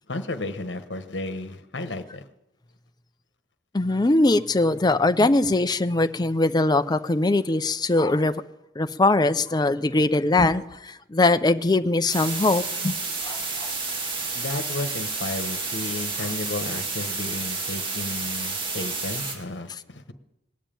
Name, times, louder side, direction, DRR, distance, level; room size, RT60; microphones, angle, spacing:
voice 1, 0.1-2.3 14.3-20.1, left 2 dB, 65° left, 1.2 m, -33 dB
voice 2, 3.7-8.4 8.8-12.9 13.2-13.7, left 2 dB, 20° left, 0.5 m, -21 dB
sound 1, 12.1-19.3, right 4 dB, 25° right, 2.5 m, -30 dB
20.0 x 7.4 x 8.9 m
head